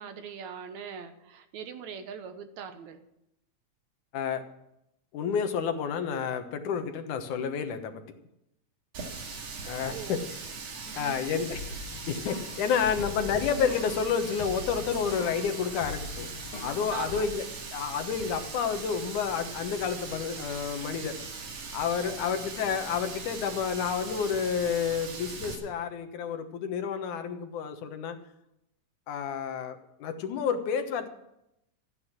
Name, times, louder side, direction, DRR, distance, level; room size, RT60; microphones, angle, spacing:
voice 1, 0.0-3.0 9.7-10.2 10.9-11.4 16.9-17.3 22.1-22.2, right 7 dB, 70° right, 9 dB, 2.3 m, -41 dB
voice 2, 5.1-8.0 9.6-10.2 11.0-11.6 12.1-16.3 16.6-17.4 17.7-21.2 21.7-28.2 29.1-31.1, left 7 dB, 80° left, 7 dB, 2.7 m, -30 dB
Water tap faucet, 8.9-25.6, right 4 dB, 90° right, 3.7 m, -40 dB
sound 1, 11.5-17.2, left 4 dB, 60° left, 2.6 m, -41 dB
14.5 x 9.8 x 7.4 m, 0.83 s
omnidirectional pair, 3.4 m